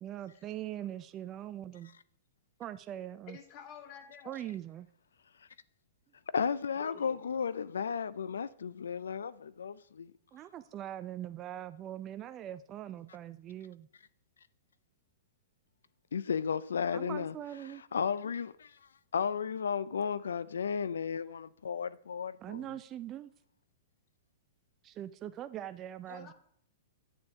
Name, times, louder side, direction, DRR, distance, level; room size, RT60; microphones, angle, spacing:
voice 1, 0.0-1.9 2.6-3.4 4.3-4.9 10.3-13.9 16.9-17.8 22.4-23.3 24.8-26.3, right 12 dB, 30° right, 0.3 m, -42 dB
voice 2, 3.3-4.4 6.7-7.4 26.1-26.3, left 7 dB, 40° left, 1.2 m, -50 dB
voice 3, 6.3-10.1 16.1-17.3 17.9-18.7 19.1-22.6, left 6 dB, 90° left, 0.4 m, -34 dB
8.5 x 7.1 x 2.8 m
hypercardioid pair, 130°, 0 cm